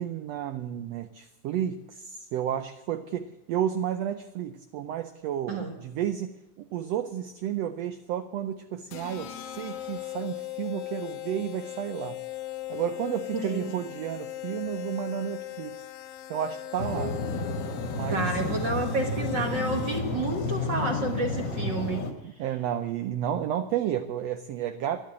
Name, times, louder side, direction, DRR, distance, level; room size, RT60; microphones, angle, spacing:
voice 1, 0.0-12.2 12.7-15.8 16.3-17.2 17.9-18.7 22.2-25.0, right 10 dB, 85° right, 9 dB, 1.4 m, -32 dB
sound 1, 8.9-20.3, left 14 dB, 80° left, 2.2 m, -39 dB
voice 2, 13.4-13.8 18.1-22.1, right 2 dB, 50° right, 2 dB, 1.4 m, -30 dB
sound 2, 16.8-22.1, left 2 dB, 45° left, 1.5 m, -31 dB
12.5 x 12.0 x 8.8 m, 0.96 s
omnidirectional pair, 3.7 m